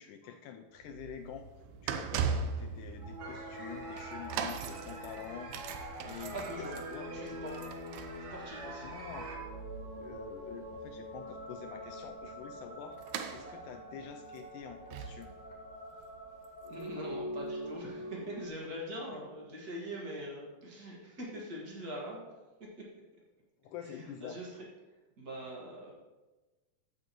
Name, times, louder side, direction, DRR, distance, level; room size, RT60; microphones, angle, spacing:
voice 1, 0.0-1.5 1.8-6.4 6.9-7.1 8.8-9.3 10.0-13.0 13.3-15.3 23.6-24.4, left 8 dB, 85° left, 5 dB, 1.8 m, -47 dB
sound 1, 0.8-17.8 18.4-18.5, right 6 dB, 85° right, 2.6 m, -41 dB
sound 2, 3.0-18.5, equal, 10° right, 2.3 m, -45 dB
sound 3, 3.2-9.4, right 3 dB, 55° right, 2.1 m, -47 dB
voice 2, 6.3-6.7 7.1-7.6 8.3-8.9 16.7-22.2 23.8-24.6 25.2-25.9, equal, 40° right, -4 dB, 1.5 m, -43 dB
15.0 x 6.4 x 3.0 m, 1.2 s
omnidirectional pair, 4.2 m